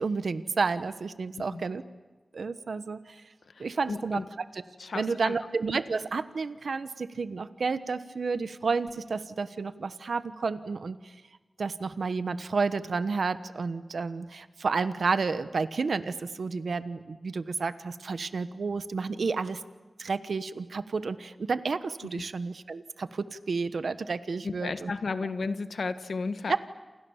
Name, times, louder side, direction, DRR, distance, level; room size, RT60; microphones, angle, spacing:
voice 1, 0.0-1.8 2.3-3.2 3.6-4.2 4.5-4.6 4.9-11.1 11.6-19.6 20.0-24.9 26.5-26.6, right 4 dB, 85° right, 12 dB, 1.2 m, -31 dB
voice 2, 3.5-4.2 4.8-5.3 22.1-22.2 24.4-26.6, left 4 dB, 85° left, 11 dB, 1.4 m, -33 dB
29.0 x 28.0 x 7.3 m, 1.2 s
wide cardioid pair, 55°, 0 cm